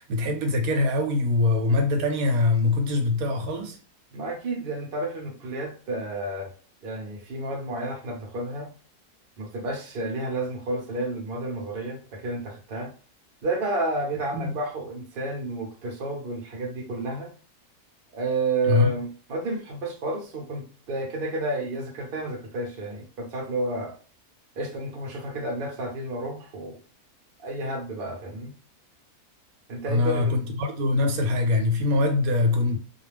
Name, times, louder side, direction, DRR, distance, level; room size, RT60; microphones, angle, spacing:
voice 1, 0.0-3.8 14.3-14.5 18.7-18.9 29.9-32.8, left 2 dB, 80° right, 1.0 m, -23 dB
voice 2, 4.1-6.5 6.8-8.7 9.4-12.9 13.4-17.3 18.1-24.0 24.6-26.8 27.4-28.5 29.7-30.4, right 2 dB, 50° right, 0.7 m, -31 dB
2.4 x 2.2 x 3.2 m
omnidirectional pair, 1.5 m